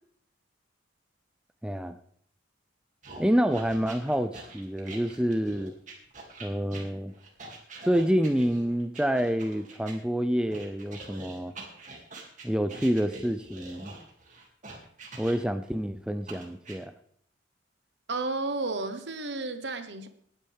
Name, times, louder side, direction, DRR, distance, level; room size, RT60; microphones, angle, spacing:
voice 1, 1.6-2.0 3.2-5.7 6.4-7.1 7.8-11.5 12.4-13.9 15.2-16.9, equal, 5° right, 10 dB, 0.4 m, -27 dB
sound 1, 3.0-10.0 10.5-15.7 16.3-16.8, right 3 dB, 40° right, 2.7 m, -45 dB
voice 2, 18.1-20.1, right 3 dB, 60° right, 9 dB, 1.3 m, -32 dB
19.5 x 9.9 x 3.6 m, 0.64 s
head